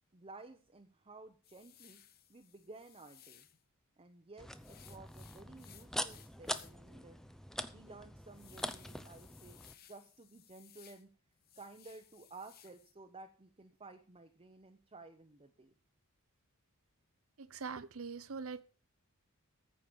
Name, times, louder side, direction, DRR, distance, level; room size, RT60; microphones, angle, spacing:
voice 1, 0.1-2.0 2.3-3.5 4.0-7.2 7.6-9.6 9.9-11.1 11.6-15.7, right 3 dB, 25° right, 0.9 m, -54 dB
sound 1, 1.4-3.6 4.6-6.9 7.3-7.4 7.9-11.0 11.4-12.9, left 11 dB, 45° left, 0.9 m, -61 dB
sound 2, 4.4-9.7, left 1 dB, ahead, 0.6 m, -44 dB
voice 2, 17.4-18.6, right 5 dB, 70° right, 0.7 m, -43 dB
14.0 x 5.2 x 7.0 m
head